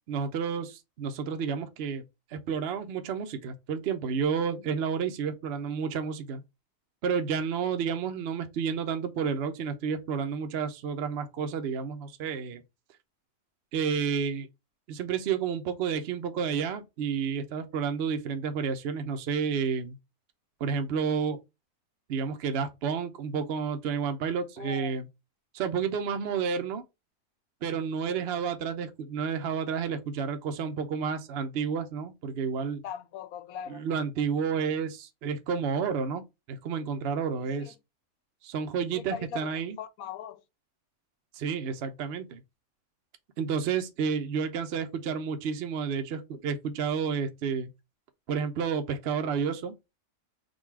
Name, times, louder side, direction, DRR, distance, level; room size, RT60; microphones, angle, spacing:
voice 1, 0.1-2.0 2.3-6.4 7.0-12.6 13.7-14.5 14.9-20.0 20.6-21.4 22.1-25.0 25.5-26.8 27.6-32.8 33.7-36.2 36.5-37.7 38.4-39.8 41.3-42.4 43.4-47.7 48.3-49.7, right 6 dB, 60° right, 0.7 m, -30 dB
voice 2, 24.6-25.0 28.1-28.3 32.8-33.9 37.4-37.7 38.9-39.5 39.8-40.4, left 8 dB, 80° left, 1.0 m, -40 dB
3.8 x 2.3 x 4.5 m
omnidirectional pair, 1.6 m